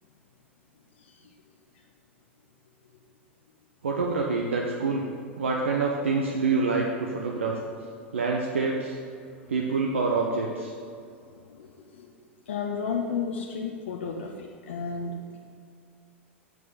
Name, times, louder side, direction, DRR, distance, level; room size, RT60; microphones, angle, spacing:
voice 1, 3.8-5.1 5.4-7.6 8.1-9.0 9.5-10.7, right 4 dB, 75° right, 0 dB, 0.9 m, -26 dB
voice 2, 11.3-12.1 12.5-15.4, left 5 dB, 65° left, 0 dB, 0.9 m, -33 dB
7.9 x 7.7 x 5.1 m, 2.3 s
figure-of-eight pair, 90°, 7 cm